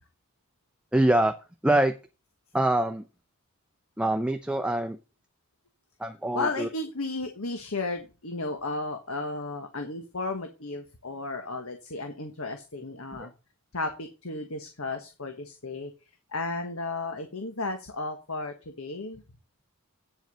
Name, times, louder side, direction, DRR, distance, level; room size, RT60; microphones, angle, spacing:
voice 1, 0.9-1.3 1.6-1.9 2.5-3.1 4.0-5.0 6.0-6.7 13.2-13.3, right 1 dB, 5° right, 6 dB, 0.7 m, -24 dB
voice 2, 6.3-13.3 13.7-15.9 16.3-19.2, left 3 dB, 75° left, 6 dB, 1.5 m, -34 dB
9.1 x 7.8 x 5.5 m, 0.31 s
head